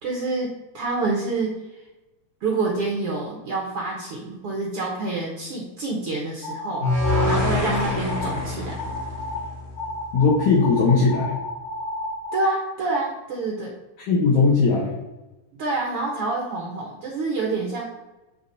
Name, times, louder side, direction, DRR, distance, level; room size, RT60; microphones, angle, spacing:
voice 1, 0.0-1.6 2.4-6.8 7.2-8.7 12.3-13.7 15.6-17.8, right 3 dB, 80° right, -2 dB, 1.3 m, -27 dB
sound 1, 6.4-7.4 7.7-8.4 8.8-9.4 9.8-12.5, left 3 dB, 45° left, 1.7 m, -32 dB
sound 2, 6.8-10.0, left 2 dB, 85° left, 0.4 m, -25 dB
voice 2, 10.1-11.4 14.1-14.9, left 4 dB, 65° left, -3 dB, 2.1 m, -18 dB
9.0 x 3.6 x 4.0 m, 1.1 s
omnidirectional pair, 4.3 m